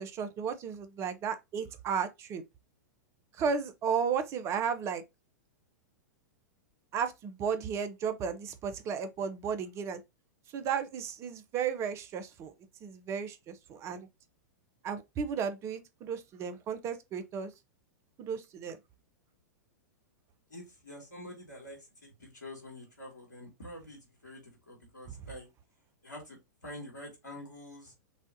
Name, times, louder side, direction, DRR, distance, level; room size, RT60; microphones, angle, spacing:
voice 1, 0.0-2.4 3.4-5.0 6.9-10.0 10.5-12.5 12.8-14.1 14.8-17.5 18.2-18.8, right 7 dB, 30° right, 0.7 m, -34 dB
voice 2, 20.5-25.5 26.0-27.9, left 1 dB, 85° left, 2.8 m, -47 dB
6.2 x 2.5 x 2.7 m
figure-of-eight pair, 100°, 9 cm